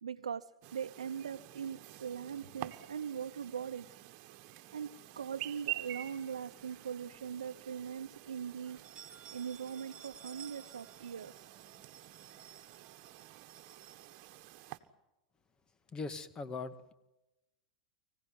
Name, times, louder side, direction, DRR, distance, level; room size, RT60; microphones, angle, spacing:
voice 1, 0.0-4.0 4.7-8.8 9.3-11.5, right 7 dB, 90° right, 5 dB, 0.8 m, -41 dB
Chirp tweet, 0.6-14.8, right 17 dB, 55° right, 1.5 m, -48 dB
sound 1, 6.2-7.1 7.5-7.6 8.0-8.1 8.6-14.9, right 8 dB, 25° right, 2.5 m, -56 dB
voice 2, 15.9-16.9, left 4 dB, 25° left, 12 dB, 2.0 m, -40 dB
25.0 x 16.5 x 9.5 m, 0.98 s
hypercardioid pair, 100°, 3 cm